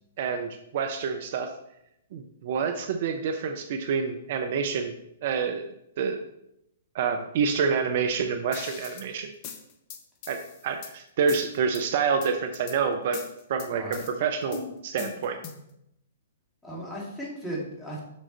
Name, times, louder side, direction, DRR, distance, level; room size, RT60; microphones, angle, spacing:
voice 1, 0.2-1.5 2.1-4.9 5.2-6.2 6.9-9.3 10.3-13.2 13.5-15.4, right 6 dB, 50° right, 6 dB, 0.6 m, -28 dB
sound 1, 8.5-9.1 9.4-10.9 11.3-11.8 12.2-12.8 13.1-14.1 14.5-15.7, left 6 dB, 40° left, 0.9 m, -40 dB
voice 2, 13.7-14.1 16.6-18.0, right 1 dB, 10° left, -5 dB, 2.6 m, -36 dB
7.3 x 6.3 x 3.3 m, 0.80 s
figure-of-eight pair, 115°, 0 cm